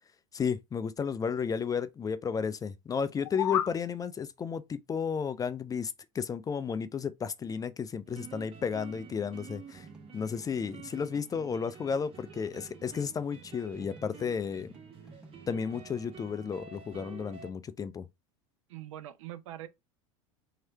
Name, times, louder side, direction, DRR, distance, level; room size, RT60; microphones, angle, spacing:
voice 1, 0.3-9.9 10.1-14.7 15.5-18.1, left 6 dB, 20° left, 0.4 m, -33 dB
sound 1, 3.1-3.8, left 10 dB, 75° left, 0.5 m, -31 dB
sound 2, 8.1-17.5, right 6 dB, 35° right, 1.0 m, -49 dB
sound 3, 9.8-16.1, right 1 dB, 5° right, 1.0 m, -58 dB
voice 2, 18.7-19.7, right 13 dB, 75° right, 0.6 m, -43 dB
3.1 x 2.8 x 4.4 m
hypercardioid pair, 85°, 17 cm